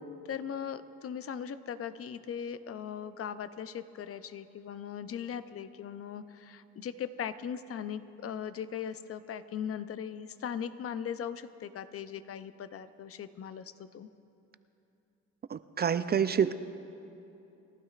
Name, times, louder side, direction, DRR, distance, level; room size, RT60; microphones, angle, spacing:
voice 1, 0.2-14.1, left 8 dB, 50° left, 12 dB, 0.6 m, -39 dB
voice 2, 15.5-16.5, right 8 dB, 35° right, 12 dB, 0.4 m, -27 dB
28.5 x 12.5 x 2.5 m, 2.8 s
cardioid pair, 90°, 30 cm